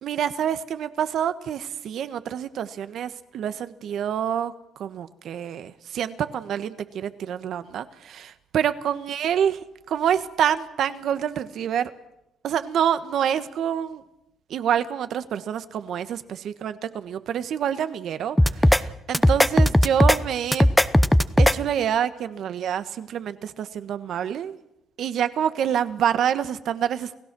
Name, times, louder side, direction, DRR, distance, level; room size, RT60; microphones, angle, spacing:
voice 1, 0.0-9.6 9.9-11.9 12.4-14.0 14.5-20.7 21.4-24.6 25.0-27.2, right 9 dB, 70° right, 11 dB, 1.3 m, -27 dB
sound 1, 18.4-18.8 19.1-20.2 20.5-21.5, left 1 dB, 5° left, 0.8 m, -17 dB
29.5 x 16.0 x 6.2 m, 0.83 s
cardioid pair, 90°, 0 cm